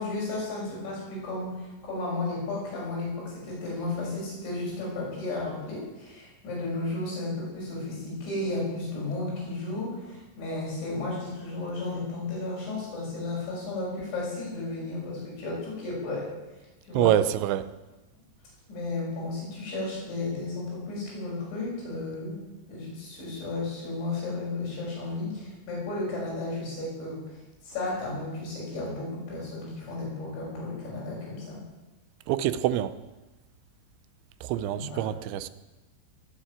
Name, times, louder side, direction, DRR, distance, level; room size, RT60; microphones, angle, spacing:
voice 1, 0.0-16.3 16.8-17.1 18.7-22.4 22.7-31.6 34.7-35.0, left 2 dB, 75° left, 8.8 m, -33 dB
voice 2, 16.9-17.7 32.3-32.9 34.4-35.5, right 12 dB, 85° right, 3.1 m, -25 dB
21.5 x 7.5 x 9.0 m
omnidirectional pair, 5.2 m